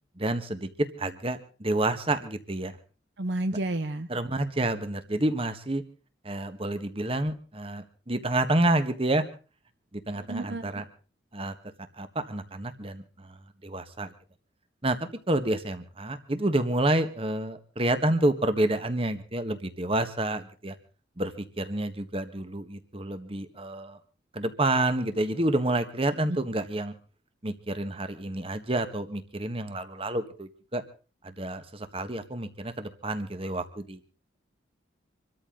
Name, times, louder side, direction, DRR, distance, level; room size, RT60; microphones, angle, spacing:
voice 1, 0.2-0.7 1.0-2.7 4.1-5.8 6.2-9.3 9.9-10.8 11.3-11.5 12.0-13.4 13.6-14.1 14.8-20.7 21.2-24.0 24.3-26.9 27.4-30.8 31.2-34.0, right 1 dB, 30° right, 10 dB, 1.5 m, -29 dB
voice 2, 3.2-4.1 10.3-10.7, right 1 dB, 65° right, 10 dB, 0.9 m, -30 dB
26.0 x 13.5 x 3.9 m, 0.36 s
head